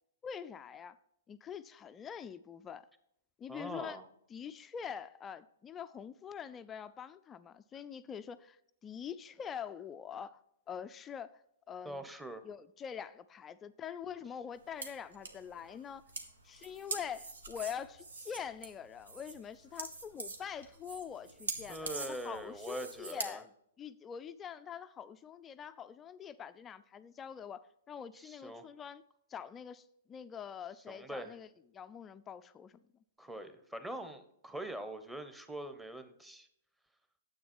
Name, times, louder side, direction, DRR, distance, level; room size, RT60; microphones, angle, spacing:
voice 1, 0.2-1.0 1.3-2.9 3.4-4.0 4.3-10.4 10.7-11.4 11.7-12.1 12.4-16.0 16.4-23.5 23.8-29.0 29.3-32.8, left 8 dB, 20° left, 0.4 m, -45 dB
voice 2, 3.5-4.0 11.8-12.4 21.7-23.4 28.1-28.6 30.9-31.3 33.2-36.5, right 1 dB, 5° right, 1.0 m, -43 dB
sound 1, 14.6-23.2, right 3 dB, 80° right, 1.7 m, -44 dB
9.9 x 8.0 x 4.4 m
hypercardioid pair, 125°, 0 cm